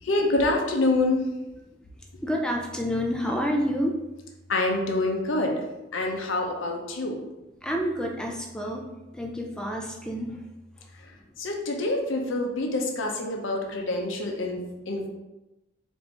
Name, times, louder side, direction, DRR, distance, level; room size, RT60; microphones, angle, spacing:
voice 1, 0.0-1.2 4.5-5.6 5.9-7.2 11.0-11.1 11.4-15.1, left 2 dB, 75° left, 1 dB, 0.7 m, -26 dB
voice 2, 2.2-4.0 7.6-8.8 9.1-10.4, equal, 5° left, 0 dB, 0.4 m, -28 dB
4.4 x 2.6 x 3.3 m, 1.0 s
head